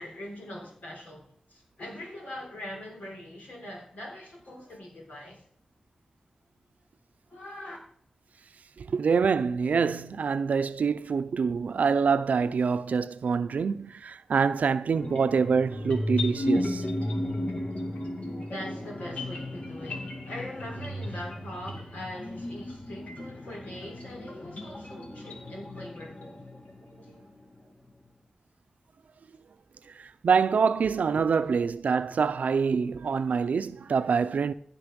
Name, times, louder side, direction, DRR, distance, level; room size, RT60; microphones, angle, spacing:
voice 1, 0.0-5.4 7.3-7.8 17.5-17.6 18.5-26.6 27.0-27.3 31.4-31.5, left 1 dB, 90° left, 3.7 m, -42 dB
voice 2, 8.8-16.9 30.0-34.5, right 5 dB, 85° right, 0.6 m, -26 dB
sound 1, 14.9-27.1, left 1 dB, 65° left, 2.1 m, -34 dB
15.5 x 5.4 x 5.2 m
cardioid pair, 55°, 3 cm